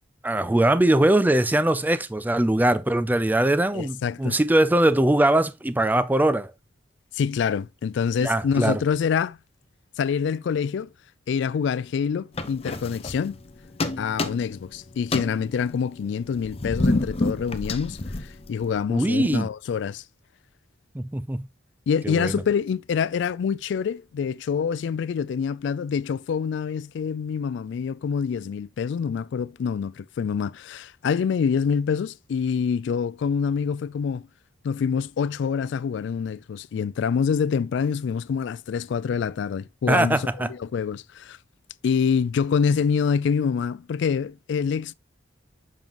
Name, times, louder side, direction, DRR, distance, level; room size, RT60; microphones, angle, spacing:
voice 1, 0.2-6.5 8.2-8.8 18.9-19.5 20.9-21.5 22.0-22.4 39.9-40.5, right 1 dB, 10° right, 0.4 m, -21 dB
voice 2, 3.7-4.4 7.1-9.4 10.0-10.9 11.3-13.4 14.0-20.0 21.9-34.3 34.6-41.4 41.8-44.9, left 6 dB, 65° left, 0.3 m, -26 dB
sound 1, 12.4-13.5 13.8-14.7 15.0-18.8, left 2 dB, 30° left, 0.7 m, -28 dB
7.0 x 5.4 x 2.9 m
head